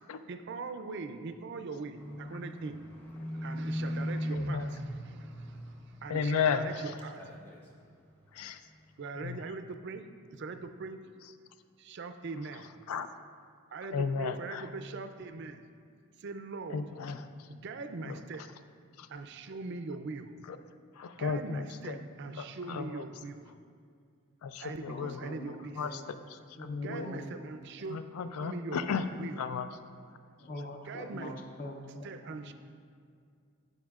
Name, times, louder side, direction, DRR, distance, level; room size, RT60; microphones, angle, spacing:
voice 1, 0.3-2.9 3.3-5.6 6.0-6.7 7.0-7.2 9.0-11.2 11.8-12.7 13.7-15.6 16.2-16.8 17.5-18.5 19.1-20.3 21.2-23.5 24.6-25.8 26.7-28.0 28.4-28.9 29.1-29.4 30.8-31.4 32.0-32.5, right 3 dB, 50° right, 8 dB, 0.4 m, -41 dB
Livestock farm animals working animals, 1.9-6.7 7.0-7.7 8.1-8.3, equal, 10° left, 0.8 m, -38 dB
voice 2, 4.3-4.7 6.1-7.3 8.3-8.6 9.2-9.4 12.9-13.1 13.9-14.7 16.7-17.5 18.0-18.2 19.0-19.1 20.5-20.6 20.9-22.0 22.4-23.0 24.4-25.2 25.8-27.1 27.9-29.1 29.4-29.7, left 5 dB, 90° left, 10 dB, 0.4 m, -34 dB
voice 3, 24.8-26.0 26.6-27.4 30.4-32.5, left 1 dB, 40° left, 3 dB, 0.6 m, -44 dB
15.0 x 5.2 x 2.4 m, 2.2 s
head